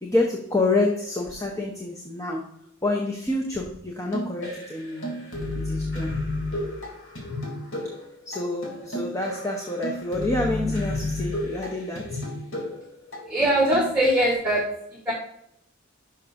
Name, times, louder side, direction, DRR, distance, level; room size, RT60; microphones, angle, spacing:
voice 1, 0.0-2.5 2.8-5.2 5.5-6.1 8.3-12.2, left 2 dB, 15° left, 0 dB, 0.8 m, -27 dB
sound 1, 4.1-14.3, left 1 dB, 75° left, 2.8 m, -32 dB
voice 2, 13.3-14.6 14.9-15.1, right 1 dB, 5° right, -1 dB, 1.3 m, -21 dB
11.5 x 5.8 x 2.6 m, 0.73 s
head